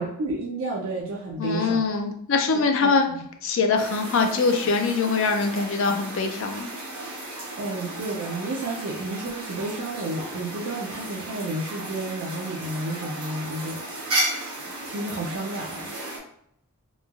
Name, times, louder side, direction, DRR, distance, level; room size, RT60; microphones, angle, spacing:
voice 1, 0.0-1.9 2.8-3.3 7.6-14.2 14.7-16.0, right 2 dB, 60° right, -2 dB, 0.4 m, -31 dB
voice 2, 1.4-3.1 3.4-6.7, left 4 dB, 60° left, 5 dB, 0.4 m, -23 dB
sound 1, 3.8-16.2, right 1 dB, 85° right, 1.0 m, -34 dB
3.0 x 2.2 x 2.3 m, 0.68 s
head